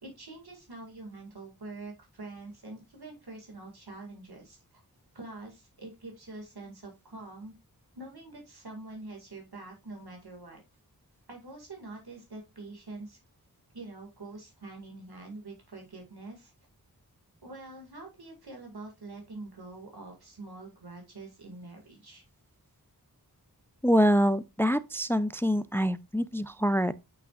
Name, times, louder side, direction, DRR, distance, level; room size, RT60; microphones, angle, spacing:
voice 1, 0.0-4.6 5.1-7.5 7.9-10.6 11.3-13.2 13.7-16.5 17.4-22.3, right 2 dB, 85° right, 2.2 m, -45 dB
voice 2, 23.8-26.9, equal, 5° left, 0.4 m, -25 dB
8.3 x 6.2 x 2.4 m
wide cardioid pair, 50°, 38 cm